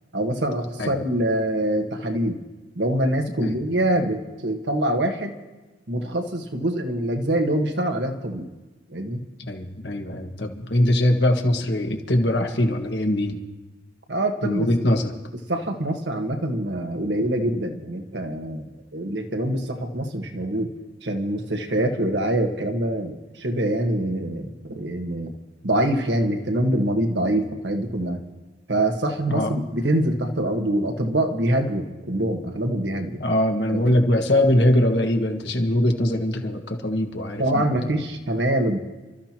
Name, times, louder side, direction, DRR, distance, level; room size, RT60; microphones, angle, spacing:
voice 1, 0.1-2.4 2.7-5.3 5.9-8.5 8.9-9.2 14.1-14.7 15.5-20.7 21.0-25.3 25.6-28.2 28.7-33.2 33.7-33.8 37.4-38.8, right 1 dB, 80° right, 4 dB, 1.6 m, -24 dB
voice 2, 9.5-13.4 14.4-15.1 29.3-29.5 33.2-37.7, left 1 dB, 75° left, 3 dB, 1.7 m, -22 dB
28.0 x 13.5 x 3.0 m, 1.2 s
head